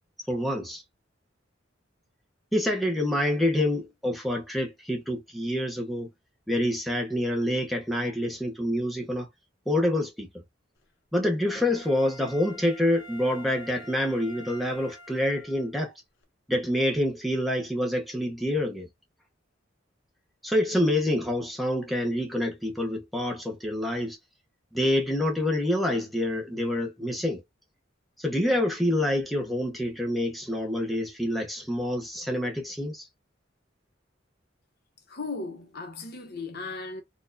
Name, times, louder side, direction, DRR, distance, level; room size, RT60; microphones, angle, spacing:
voice 1, 0.3-0.8 2.5-6.1 6.5-9.3 9.7-10.3 11.1-15.9 16.5-18.9 20.4-24.2 24.7-27.4 28.2-33.1, left 1 dB, ahead, 0.8 m, -27 dB
Wind instrument woodwind instrument, 11.4-15.7 16.2-16.3, equal, 80° left, 1.1 m, -47 dB
voice 2, 35.1-37.0, left 3 dB, 55° left, 0.9 m, -36 dB
4.2 x 2.4 x 2.5 m
head